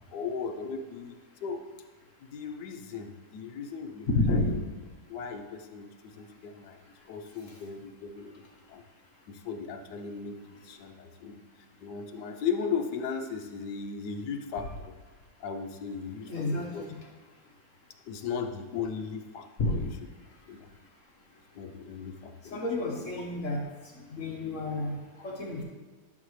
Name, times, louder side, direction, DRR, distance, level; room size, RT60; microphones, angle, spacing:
voice 1, 0.1-1.7 2.2-4.6 5.1-6.8 7.0-8.4 8.7-8.8 9.3-11.4 11.8-14.9 15.4-16.8 18.1-19.9 20.5-20.7 21.5-22.7, left 6 dB, 65° left, 5 dB, 1.2 m, -37 dB
voice 2, 4.1-4.5 7.5-7.6 16.2-17.0 19.6-19.7 22.5-23.6 24.0-25.6, left 2 dB, 45° left, -1 dB, 1.2 m, -30 dB
11.0 x 6.5 x 3.2 m, 1.3 s
omnidirectional pair, 2.2 m